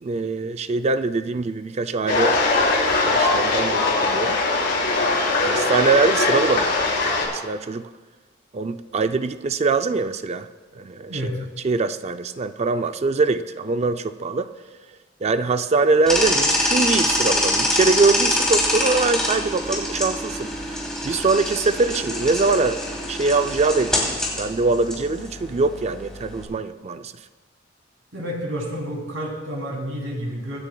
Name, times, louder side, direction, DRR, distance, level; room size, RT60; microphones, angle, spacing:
voice 1, 0.0-4.4 5.0-7.9 8.5-11.2 11.6-14.5 15.2-27.1, right 3 dB, 35° right, 10 dB, 0.4 m, -23 dB
sound 1, 2.1-7.3, left 3 dB, 65° left, 3.2 m, -21 dB
sound 2, 16.1-26.5, left 1 dB, 5° left, 2.9 m, -25 dB
voice 2, 28.1-30.6, equal, 85° right, -1 dB, 3.0 m, -29 dB
24.0 x 9.6 x 2.3 m, 1.3 s
head